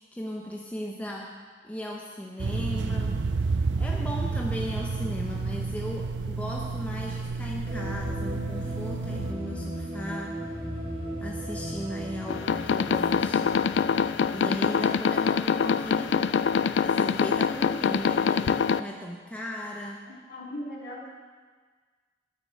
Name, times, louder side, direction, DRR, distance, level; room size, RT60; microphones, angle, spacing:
voice 1, 0.0-1.4 1.6-3.3 3.8-10.4 11.2-13.6 14.3-16.4 16.8-20.0, equal, 10° left, -1 dB, 0.8 m, -37 dB
sound 1, 2.4-9.3, right 4 dB, 80° right, 0.5 m, -30 dB
sound 2, 7.7-15.9, equal, 30° right, 1.7 m, -37 dB
sound 3, 12.3-18.8, left 6 dB, 75° left, 0.4 m, -25 dB
voice 2, 20.0-21.1, left 1 dB, 60° left, -3 dB, 2.6 m, -39 dB
9.7 x 6.9 x 8.1 m, 1.5 s
head